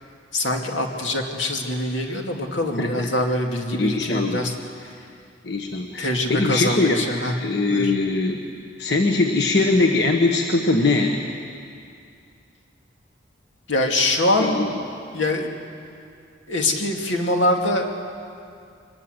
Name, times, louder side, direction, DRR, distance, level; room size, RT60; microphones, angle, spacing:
voice 1, 0.3-4.5 4.8-5.0 6.0-7.4 7.7-7.9 13.7-14.6 15.1-15.6 16.5-17.9, left 1 dB, 85° left, 2 dB, 2.6 m, -23 dB
voice 2, 2.8-3.1 3.8-4.4 5.4-7.0 7.4-8.4 8.8-11.2 14.4-14.7, left 3 dB, 60° left, 2 dB, 1.5 m, -21 dB
24.0 x 21.0 x 8.1 m, 2.4 s
head